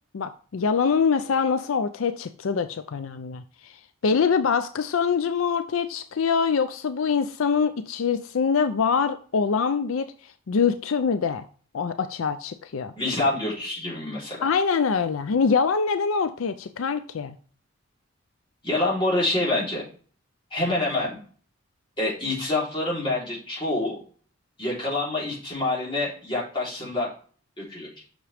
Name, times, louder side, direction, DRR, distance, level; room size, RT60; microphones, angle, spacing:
voice 1, 0.1-3.7 4.0-10.1 10.5-11.4 11.7-12.9 14.4-17.3, left 5 dB, 75° left, 10 dB, 0.5 m, -24 dB
voice 2, 13.0-14.5 18.6-19.8 20.5-21.2 22.0-24.0 24.6-27.1 27.6-27.9, left 2 dB, 25° left, -6 dB, 3.5 m, -26 dB
7.2 x 6.2 x 3.4 m, 0.43 s
head